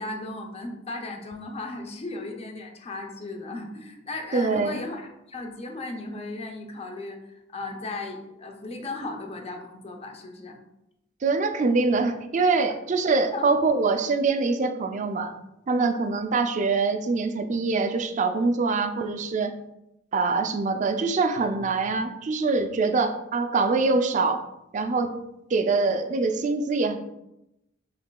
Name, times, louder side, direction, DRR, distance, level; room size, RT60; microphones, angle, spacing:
voice 1, 0.0-5.0 5.3-7.2 7.5-10.6 13.3-13.5 15.7-15.9, left 2 dB, 35° left, 3 dB, 0.5 m, -36 dB
voice 2, 4.3-4.8 11.2-15.3 15.7-19.5 20.1-24.4 24.7-25.1 25.5-27.0, right 3 dB, 40° right, 7 dB, 0.4 m, -24 dB
5.7 x 3.2 x 2.2 m, 0.87 s
head